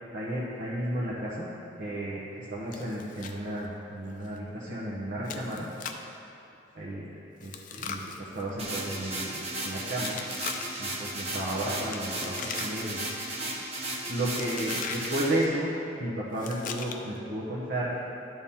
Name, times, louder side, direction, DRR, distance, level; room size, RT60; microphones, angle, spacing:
voice 1, 0.1-1.5 1.8-5.7 6.7-7.1 7.4-10.2 10.8-13.0 14.1-15.7 16.0-18.0, right 1 dB, 65° right, -8 dB, 1.1 m, -33 dB
Chewing mastication, 2.7-3.4 3.6-3.7 4.2-4.4 5.2-6.1 7.4-9.0 10.0-10.9 11.8-13.0 13.3-13.7 14.3-15.2 16.3-17.2, left 6 dB, 45° left, 0.5 m, -40 dB
sound 1, 8.6-15.4, right 1 dB, 35° right, 1.0 m, -35 dB
12.5 x 4.3 x 3.7 m, 2.8 s
head